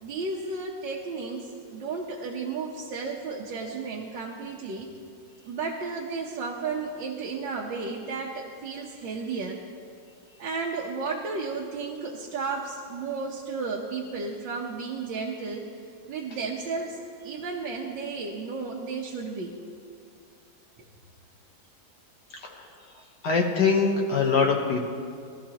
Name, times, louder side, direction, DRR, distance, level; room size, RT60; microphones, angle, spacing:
voice 1, 0.0-4.9 5.4-9.6 10.4-15.6 16.1-19.5, right 4 dB, 75° right, -3 dB, 1.7 m, -33 dB
voice 2, 23.2-24.8, left 5 dB, 65° left, -1 dB, 1.7 m, -23 dB
21.5 x 13.0 x 2.9 m, 2.3 s
omnidirectional pair, 2.0 m